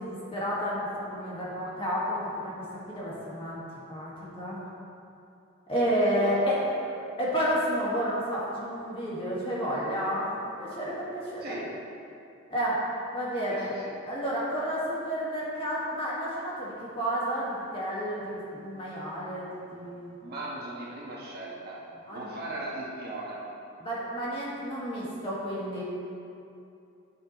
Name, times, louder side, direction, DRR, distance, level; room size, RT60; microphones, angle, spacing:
voice 1, 0.0-4.6 5.7-6.6 7.2-10.3 10.6-11.6 12.5-12.9 13.1-13.7 14.1-20.2 22.1-22.3 23.8-25.8, equal, 25° left, -7 dB, 1.8 m, -31 dB
voice 2, 13.5-13.9 20.2-21.8 22.1-23.4, right 2 dB, 45° right, -6 dB, 1.5 m, -38 dB
9.0 x 8.2 x 3.1 m, 2.7 s
head